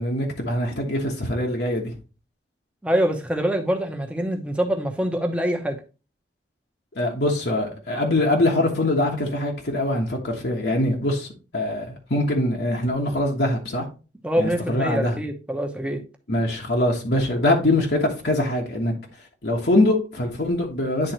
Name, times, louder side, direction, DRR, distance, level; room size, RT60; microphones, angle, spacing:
voice 1, 0.0-1.9 6.9-11.3 11.5-13.9 14.4-15.2 16.3-18.9 19.4-21.1, left 1 dB, 70° left, 1.3 m, -23 dB
voice 2, 2.8-5.8 14.2-16.0, equal, 5° right, 0.9 m, -24 dB
10.0 x 3.9 x 3.0 m
head